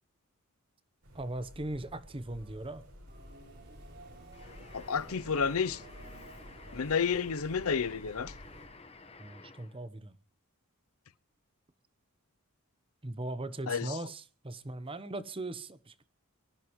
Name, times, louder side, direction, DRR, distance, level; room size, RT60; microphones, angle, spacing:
sound 1, 1.0-8.7, equal, 80° right, 5.6 m, -52 dB
voice 1, 1.1-2.9 9.2-10.1 13.0-16.0, right 2 dB, 25° right, 0.9 m, -39 dB
Subway metro underground, 3.1-9.3, right 1 dB, 45° right, 4.4 m, -55 dB
sound 2, 4.3-9.8, left 3 dB, 25° left, 1.2 m, -53 dB
voice 2, 4.7-5.8 6.7-8.3 13.7-13.9, left 6 dB, 75° left, 0.6 m, -30 dB
23.5 x 14.5 x 3.2 m
head